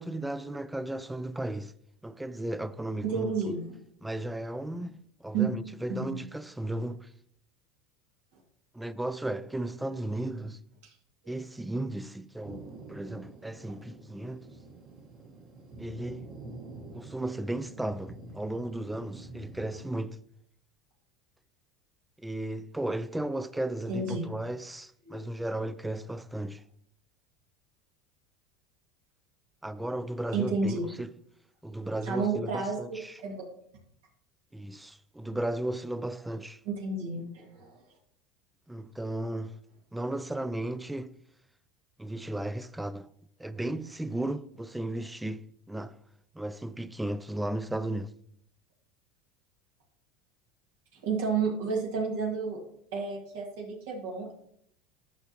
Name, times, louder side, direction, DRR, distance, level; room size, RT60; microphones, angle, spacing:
voice 1, 0.0-1.7 2.0-3.5 4.0-7.1 8.7-10.6 11.3-14.5 15.8-16.3 16.9-20.2 22.2-26.6 29.6-31.1 31.6-33.2 34.5-36.6 38.7-39.6 39.9-41.1 42.0-43.1 43.4-46.0 46.3-48.1, right 1 dB, 5° right, 0.3 m, -35 dB
voice 2, 3.0-3.7 5.3-5.5 5.9-6.1 23.9-24.3 25.1-25.2 30.3-30.9 32.1-32.8 33.2-33.4 36.7-37.8 51.0-52.6 52.9-54.3, right 4 dB, 75° right, 2.0 m, -31 dB
Thunder, 12.4-20.0, right 2 dB, 35° right, 1.2 m, -47 dB
10.5 x 5.7 x 2.9 m
supercardioid pair, 130°, 0 cm